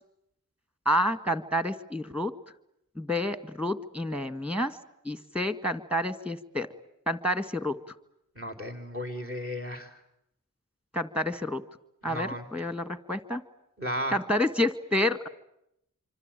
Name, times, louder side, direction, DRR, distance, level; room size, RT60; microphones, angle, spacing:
voice 1, 0.9-2.3 3.0-4.8 5.1-6.7 7.1-7.7 10.9-11.6 12.0-13.4 14.1-15.3, left 1 dB, 5° right, 12 dB, 1.9 m, -29 dB
voice 2, 8.3-10.0 12.0-12.4 13.8-14.2, equal, 45° right, 8 dB, 4.5 m, -34 dB
26.0 x 25.5 x 9.1 m, 0.79 s
wide cardioid pair, 60°, 32 cm